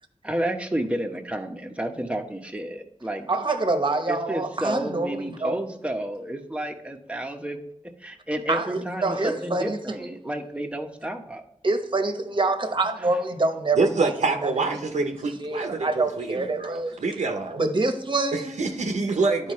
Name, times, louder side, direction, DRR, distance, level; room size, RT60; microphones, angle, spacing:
voice 1, 0.2-3.3 4.1-7.6 8.0-11.4, right 1 dB, 10° right, 1.0 m, -31 dB
voice 2, 3.3-5.6 8.5-10.2 11.6-17.0 17.6-18.6, right 2 dB, 40° right, 1.0 m, -26 dB
voice 3, 13.8-17.6 18.3-19.5, right 3 dB, 75° right, 0.7 m, -26 dB
11.5 x 4.7 x 3.2 m
wide cardioid pair, 80°, 12 cm